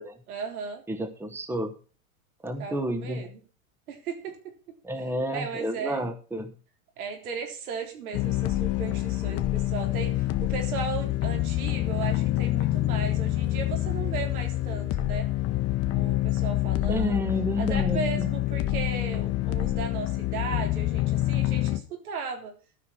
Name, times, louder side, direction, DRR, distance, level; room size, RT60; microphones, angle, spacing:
voice 1, 0.3-0.8 2.6-3.4 3.9-6.1 7.0-15.3 15.8-17.2 17.6-22.5, right 6 dB, 80° right, 5 dB, 3.7 m, -36 dB
voice 2, 0.9-1.7 2.4-3.3 4.8-6.5 16.9-18.3, equal, 5° right, 8 dB, 1.1 m, -30 dB
sound 1, 8.1-21.8, left 15 dB, 35° left, 1.0 m, -27 dB
13.0 x 6.0 x 6.3 m, 0.38 s
supercardioid pair, 125°, 43 cm